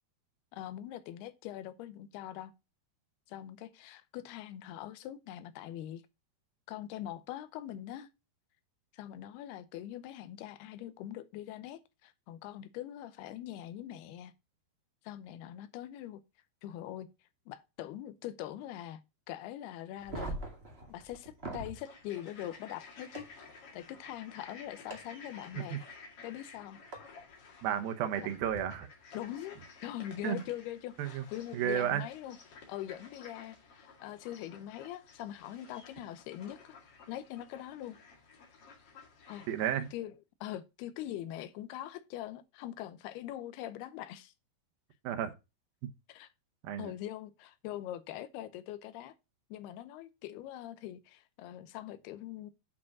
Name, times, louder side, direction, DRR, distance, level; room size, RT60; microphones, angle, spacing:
voice 1, 0.5-2.5 3.3-6.0 6.7-8.1 8.9-14.3 15.0-16.2 16.6-17.1 17.5-19.0 19.3-20.4 20.9-23.3 23.7-25.9 26.2-26.8 28.2-28.3 29.1-36.8 37.1-38.0 39.3-39.5 39.9-44.3 46.1-46.3 46.8-49.1 49.5-52.5, left 12 dB, 85° left, 2.8 m, -43 dB
sound 1, 20.0-21.8 23.1-23.2 24.9-25.0 26.9-27.0 28.4-28.6, right 2 dB, 25° right, 1.5 m, -41 dB
sound 2, 21.7-39.9, left 4 dB, 45° left, 2.4 m, -54 dB
voice 2, 27.6-28.9 30.2-30.4 31.0-31.3 31.5-32.0 39.5-39.9 45.0-45.3 46.6-46.9, right 10 dB, 75° right, 2.6 m, -32 dB
8.5 x 4.9 x 5.9 m
omnidirectional pair, 4.5 m